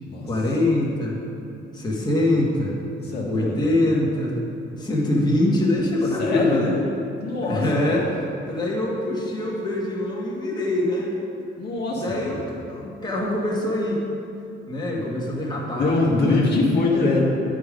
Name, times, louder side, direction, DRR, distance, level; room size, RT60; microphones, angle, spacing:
voice 1, 0.2-1.2 1.7-2.8 3.3-4.4 4.8-6.8 7.4-11.1 11.9-12.4 12.7-14.0 14.7-16.5, left 1 dB, 20° left, -4 dB, 1.8 m, -24 dB
voice 2, 3.0-3.6 6.2-6.6 7.2-7.8 11.6-12.4 15.8-17.2, left 3 dB, 55° left, -4 dB, 1.6 m, -23 dB
9.4 x 5.1 x 5.2 m, 2.6 s
cardioid pair, 90°, 20 cm